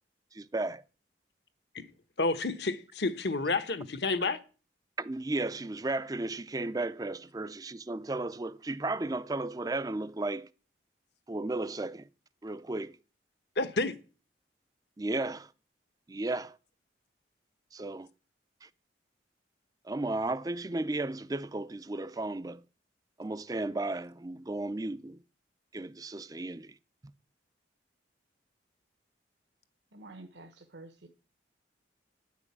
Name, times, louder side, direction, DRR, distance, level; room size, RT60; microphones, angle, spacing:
voice 1, 0.3-0.8 5.0-10.5 11.3-12.1 12.4-12.9 15.0-15.5 16.1-16.6 17.7-18.1 18.6-18.7 19.9-22.6 23.2-25.2 25.7-26.7, right 2 dB, 20° right, 0.4 m, -34 dB
voice 2, 2.2-4.4 13.6-14.0, left 3 dB, 65° left, 1.0 m, -30 dB
voice 3, 29.9-31.1, right 2 dB, 70° right, 1.1 m, -49 dB
10.0 x 6.2 x 8.5 m
head